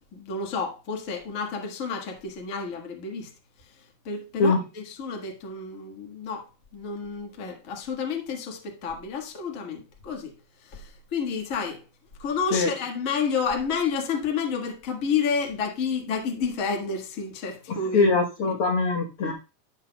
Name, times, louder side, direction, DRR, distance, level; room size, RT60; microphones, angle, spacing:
voice 1, 0.1-3.3 4.0-10.3 10.7-11.8 12.2-18.1 19.2-19.3, left 5 dB, 55° left, 0.8 m, -30 dB
voice 2, 17.9-19.3, left 3 dB, 80° left, 1.2 m, -22 dB
15.0 x 6.0 x 2.3 m
omnidirectional pair, 4.3 m